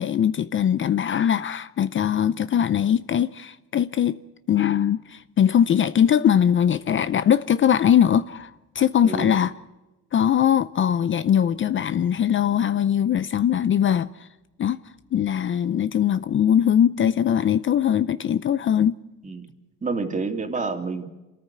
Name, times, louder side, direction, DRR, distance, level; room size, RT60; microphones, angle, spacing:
voice 1, 0.0-4.2 4.5-9.5 10.1-14.1 14.6-14.8 15.1-19.0, left 9 dB, 40° left, 0.6 m, -21 dB
voice 2, 9.0-9.4 19.2-19.5 19.8-21.1, right 4 dB, 25° right, 2.8 m, -28 dB
27.5 x 14.0 x 6.8 m
cardioid pair, 115°, 30 cm